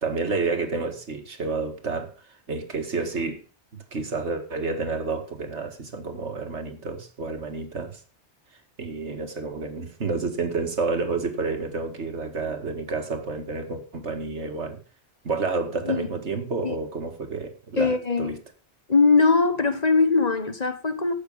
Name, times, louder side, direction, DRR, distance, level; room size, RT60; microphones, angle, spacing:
voice 1, 0.0-2.1 2.5-3.4 3.7-8.0 8.8-14.8 15.2-18.4, right 4 dB, 80° right, 2.3 m, -30 dB
voice 2, 17.8-18.4 18.9-21.1, left 4 dB, 40° left, 1.3 m, -21 dB
12.5 x 8.3 x 5.6 m
omnidirectional pair, 1.1 m